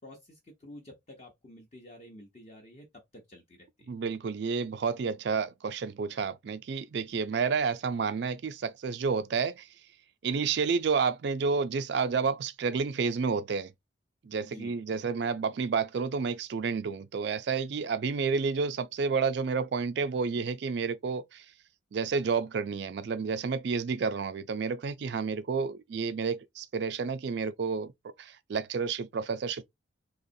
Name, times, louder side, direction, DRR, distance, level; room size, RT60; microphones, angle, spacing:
voice 1, 0.0-2.9 3.1-3.9 14.4-14.7, left 1 dB, 35° left, 0.8 m, -50 dB
voice 2, 3.9-9.7 10.2-13.7 14.2-21.4 21.9-29.6, right 5 dB, 55° right, 0.4 m, -30 dB
4.0 x 2.9 x 2.6 m
head